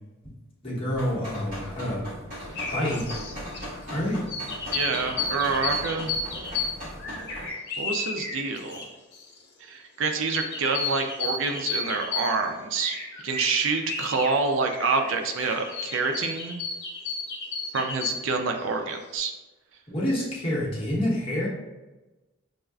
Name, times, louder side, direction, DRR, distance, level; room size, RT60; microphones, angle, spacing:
voice 1, 0.6-2.0 2.7-3.1 3.9-4.2 19.9-21.5, left 1 dB, 25° left, -7 dB, 1.1 m, -27 dB
sound 1, 0.9-7.5, equal, 45° right, 1.5 m, -39 dB
sound 2, 2.6-3.7 4.3-8.9 9.1-9.4 10.2-12.3 12.8-14.3 14.7-18.2, left 3 dB, 55° left, 0.8 m, -33 dB
voice 2, 4.7-6.1 7.8-8.9 9.6-16.6 17.7-19.3, right 4 dB, 70° right, 5 dB, 0.4 m, -27 dB
6.3 x 2.3 x 2.3 m, 1.1 s
head